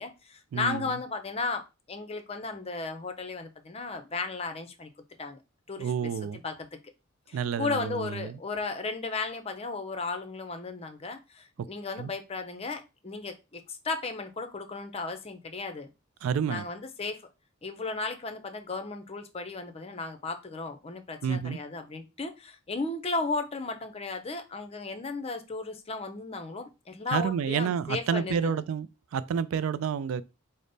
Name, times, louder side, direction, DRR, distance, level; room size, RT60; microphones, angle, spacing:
voice 1, 0.0-4.9 5.2-5.4 5.7-6.1 6.4-6.7 7.3-15.9 16.5-17.2 17.6-28.5, left 3 dB, 30° left, 0.6 m, -35 dB
voice 2, 0.5-0.9 5.8-6.4 7.3-8.4 11.6-11.7 12.0-12.1 16.2-16.7 21.2-21.6 27.1-28.9 29.1-30.2, right 7 dB, 80° right, 0.3 m, -29 dB
5.1 x 2.1 x 3.9 m
head